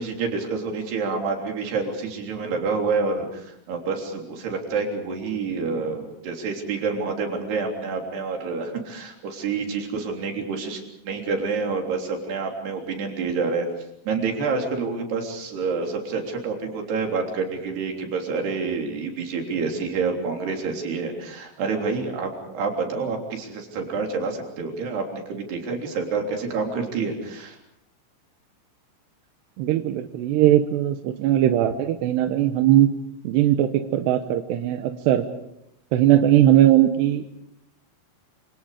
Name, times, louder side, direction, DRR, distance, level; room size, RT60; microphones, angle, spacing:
voice 1, 0.0-13.7 14.1-27.6, right 4 dB, 55° right, 2 dB, 5.3 m, -28 dB
voice 2, 29.6-32.9 33.2-35.3 35.9-37.2, right 12 dB, 75° right, 7 dB, 2.8 m, -19 dB
28.0 x 27.0 x 5.0 m, 0.81 s
omnidirectional pair, 5.7 m